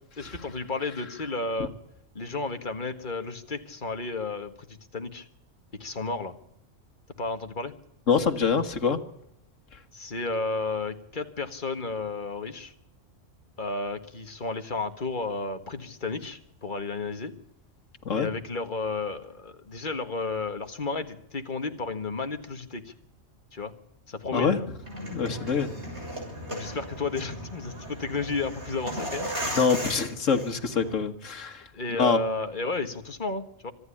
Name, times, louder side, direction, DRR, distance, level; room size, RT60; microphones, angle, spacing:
voice 1, 0.2-1.7 2.2-5.3 5.7-6.3 7.2-7.7 9.9-12.7 13.6-17.3 18.2-22.9 23.5-23.7 24.1-24.7 26.5-29.3 31.7-33.7, left 3 dB, 40° left, 7 dB, 1.8 m, -32 dB
voice 2, 8.1-9.0 18.1-18.3 24.3-24.6 25.1-25.7 29.5-31.6 32.0-32.2, left 5 dB, 85° left, 8 dB, 2.0 m, -25 dB
sound 1, 24.8-30.9, equal, 60° right, 7.5 m, -36 dB
25.5 x 10.5 x 10.0 m, 0.81 s
omnidirectional pair, 1.3 m